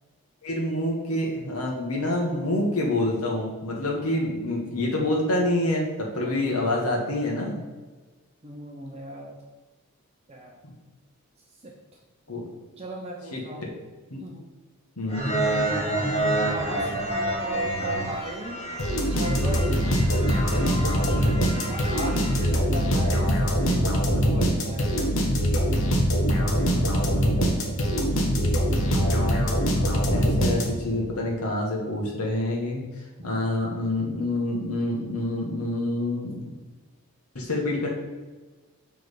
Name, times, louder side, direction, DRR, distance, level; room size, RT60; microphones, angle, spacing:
voice 1, 0.4-7.6 10.6-10.7 12.3-12.5 13.3-13.4 14.1-14.2 15.0-15.2 27.8-28.2 28.9-29.4 30.1-32.8 33.2-36.5 37.3-37.9, left 1 dB, 80° left, -2 dB, 1.2 m, -27 dB
voice 2, 3.9-4.4 6.1-6.6 8.4-9.4 10.3-10.6 11.6-11.7 12.8-13.7 14.2-14.5 15.7-16.1 16.5-18.6 19.1-21.0 21.5-25.0 26.3-26.9 33.2-33.4, right 1 dB, 25° right, -1 dB, 0.7 m, -38 dB
sound 1, 15.1-22.4, right 1 dB, 30° left, 1.2 m, -29 dB
sound 2, 18.8-31.0, equal, 60° left, 1.0 m, -23 dB
6.5 x 3.5 x 4.9 m, 1.3 s
head